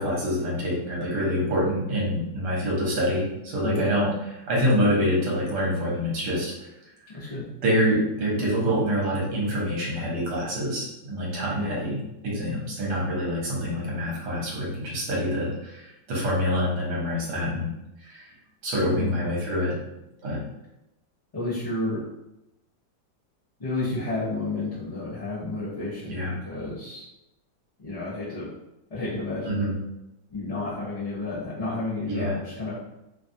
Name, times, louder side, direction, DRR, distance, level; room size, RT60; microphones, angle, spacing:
voice 1, 0.0-6.7 7.2-7.3 7.6-17.7 18.0-18.3 18.6-19.7 20.2-20.4 26.1-26.3 29.4-29.8 32.0-32.3, equal, 65° right, -4 dB, 1.5 m, -26 dB
voice 2, 7.1-7.4 11.5-11.8 19.0-19.2 21.3-22.0 23.6-27.1 27.8-28.5 28.9-29.6 30.3-32.8, left 2 dB, 40° left, -12 dB, 0.5 m, -31 dB
3.2 x 2.2 x 2.6 m, 0.91 s
omnidirectional pair, 1.9 m